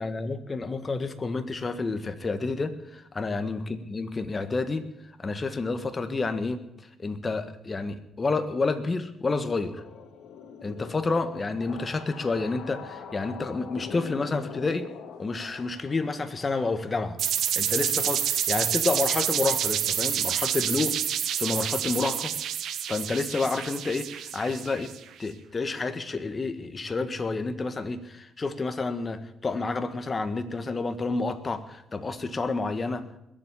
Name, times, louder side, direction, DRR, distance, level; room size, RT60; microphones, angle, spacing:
voice 1, 0.0-4.8 5.2-6.6 7.0-9.8 10.6-14.9 15.2-17.2 17.5-20.9 21.3-22.3 22.9-24.9 25.2-33.2, left 3 dB, 30° left, 10 dB, 1.6 m, -29 dB
sound 1, 9.5-17.8, left 6 dB, 80° left, 2.0 m, -44 dB
sound 2, 17.2-25.0, right 9 dB, 75° right, 1.3 m, -28 dB
21.0 x 7.7 x 8.3 m, 0.80 s
cardioid pair, 90°, 0 cm